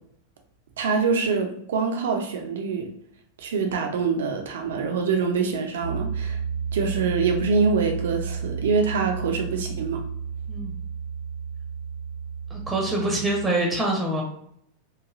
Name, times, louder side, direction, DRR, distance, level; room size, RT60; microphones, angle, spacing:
voice 1, 0.8-2.9 3.4-6.4 6.7-10.0, right 5 dB, 60° right, 3 dB, 0.5 m, -25 dB
Piano, 5.8-13.5, right 6 dB, 80° left, 0.5 m, -32 dB
voice 2, 10.5-10.8 12.5-14.2, right 1 dB, 10° right, -1 dB, 0.7 m, -25 dB
3.1 x 2.5 x 2.4 m, 0.68 s
figure-of-eight pair, 90°, 0 cm